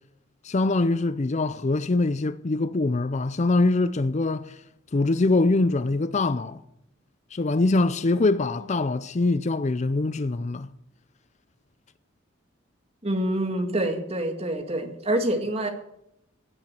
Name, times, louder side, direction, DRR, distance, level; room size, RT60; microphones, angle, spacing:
voice 1, 0.4-4.6 4.9-6.6 7.3-10.7, left 2 dB, 35° left, 0.5 m, -23 dB
voice 2, 13.0-15.7, right 1 dB, 30° right, 2.1 m, -26 dB
16.5 x 8.9 x 7.7 m
head